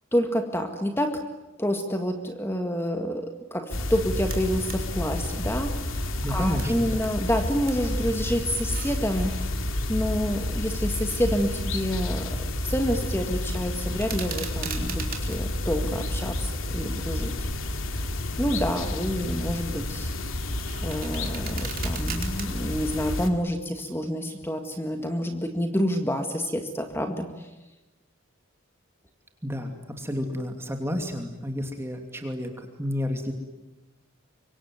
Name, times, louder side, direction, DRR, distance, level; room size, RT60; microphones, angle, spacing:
voice 1, 0.1-1.2 1.6-6.0 6.3-12.4 12.6-17.3 18.4-20.1 20.8-27.5, equal, 10° left, 6 dB, 1.9 m, -28 dB
sound 1, 3.7-23.3, left 1 dB, 70° left, 2.5 m, -30 dB
sound 2, 4.3-4.8 5.2-7.2 7.4-7.9 8.5-9.4 10.1-12.2 12.5-12.9 13.3-15.4 15.9-16.9 17.4-17.7 18.2-18.7 19.1-22.5, right 8 dB, 40° right, 3.6 m, -41 dB
voice 2, 6.2-7.0 29.4-33.3, equal, 10° right, 4 dB, 2.7 m, -31 dB
25.5 x 24.0 x 9.5 m, 1.0 s
head